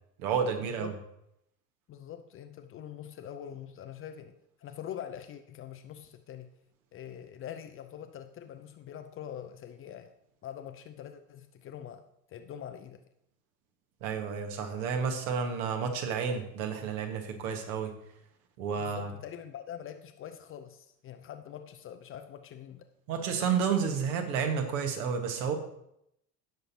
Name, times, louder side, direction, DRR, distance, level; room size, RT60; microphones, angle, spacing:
voice 1, 0.2-0.9 14.0-17.9 18.6-19.1 23.1-25.5, right 6 dB, 55° right, 5 dB, 1.7 m, -31 dB
voice 2, 1.9-6.5 6.9-10.1 10.4-12.0 12.3-13.0 18.7-22.9, left 9 dB, 25° left, 8 dB, 0.6 m, -44 dB
17.0 x 6.7 x 2.9 m, 0.77 s
figure-of-eight pair, 70°, 49 cm